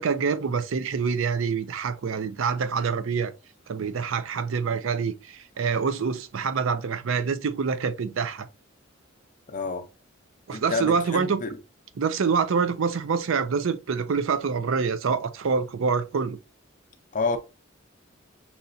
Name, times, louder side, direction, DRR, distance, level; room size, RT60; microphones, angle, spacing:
voice 1, 0.0-3.3 3.7-8.5 10.5-11.4 12.0-16.4, right 5 dB, 70° right, 0.5 m, -26 dB
voice 2, 9.5-9.9 10.5-11.6 17.1-17.4, left 3 dB, 40° left, 0.6 m, -29 dB
5.5 x 2.9 x 2.6 m
head